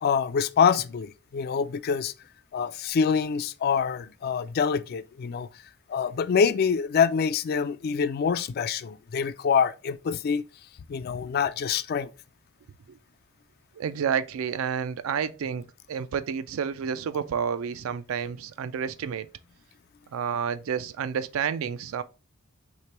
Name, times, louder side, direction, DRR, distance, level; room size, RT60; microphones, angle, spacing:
voice 1, 0.0-2.1 2.5-5.5 5.9-10.4 10.9-12.1, left 6 dB, 50° left, 0.3 m, -25 dB
voice 2, 13.7-19.3 20.1-22.0, right 7 dB, 75° right, 0.4 m, -30 dB
3.1 x 2.9 x 4.4 m
head